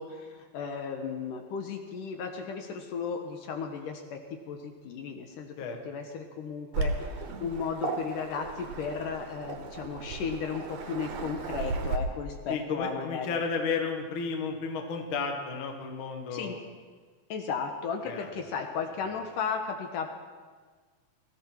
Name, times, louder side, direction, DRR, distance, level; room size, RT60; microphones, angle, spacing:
voice 1, 0.0-4.2 4.5-5.6 5.9-13.4 16.3-16.6 17.3-20.1, left 6 dB, 70° left, 4 dB, 2.4 m, -35 dB
Waves surf, 6.7-12.0, right 4 dB, 75° right, 3.0 m, -35 dB
voice 2, 12.5-16.6 18.0-18.3 19.1-19.2, left 5 dB, 50° left, 3 dB, 1.5 m, -33 dB
20.0 x 15.0 x 4.5 m, 1.5 s
omnidirectional pair, 4.4 m